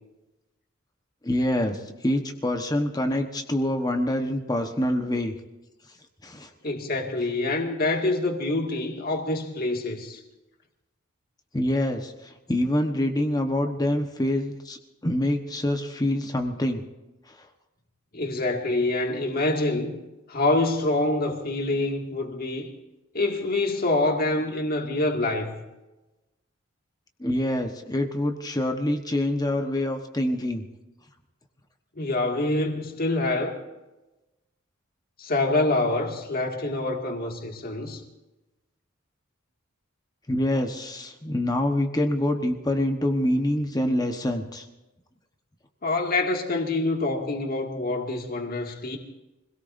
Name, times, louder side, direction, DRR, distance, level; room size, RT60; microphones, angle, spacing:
voice 1, 1.2-5.3 6.2-6.5 11.5-14.8 15.0-16.8 27.2-30.6 40.3-44.7, left 1 dB, 20° left, 1.2 m, -26 dB
voice 2, 6.6-10.2 18.1-20.0 20.3-22.7 23.1-25.6 32.0-33.6 35.2-38.0 45.8-49.0, left 2 dB, 45° left, 2.2 m, -26 dB
25.5 x 17.5 x 2.7 m
head